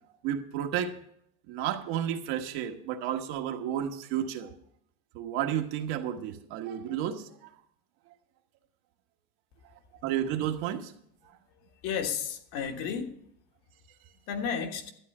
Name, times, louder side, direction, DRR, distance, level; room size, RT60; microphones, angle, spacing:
voice 1, 0.2-1.0 1.5-4.5 5.1-7.5 10.0-10.9, right 10 dB, 50° right, 1.3 m, -32 dB
voice 2, 11.8-13.2 14.3-14.9, left 7 dB, 55° left, 1.5 m, -32 dB
12.5 x 8.4 x 5.4 m
supercardioid pair, 150°, 46 cm